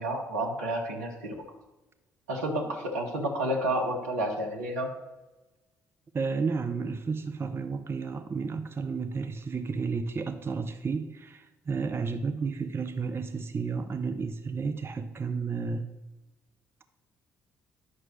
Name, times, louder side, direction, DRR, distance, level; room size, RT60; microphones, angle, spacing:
voice 1, 0.0-1.3 2.3-4.9, right 1 dB, 80° right, 0 dB, 1.2 m, -30 dB
voice 2, 6.1-15.9, right 5 dB, 30° right, 8 dB, 0.6 m, -32 dB
11.0 x 6.1 x 3.2 m, 1.1 s
figure-of-eight pair, 45°, 8 cm